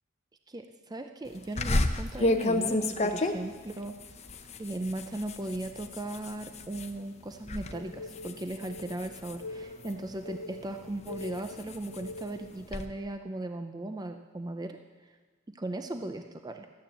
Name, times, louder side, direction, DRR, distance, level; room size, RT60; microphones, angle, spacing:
voice 1, 0.5-4.0 4.6-14.8 15.5-16.7, right 1 dB, 20° right, 7 dB, 0.5 m, -37 dB
sound 1, 1.6-6.9 7.3-7.7 8.1-10.1 10.7-12.9, left 2 dB, 30° left, 0.8 m, -31 dB
sound 2, 7.7-12.6, left 3 dB, 85° left, 0.7 m, -44 dB
13.0 x 9.6 x 7.5 m, 1.3 s
head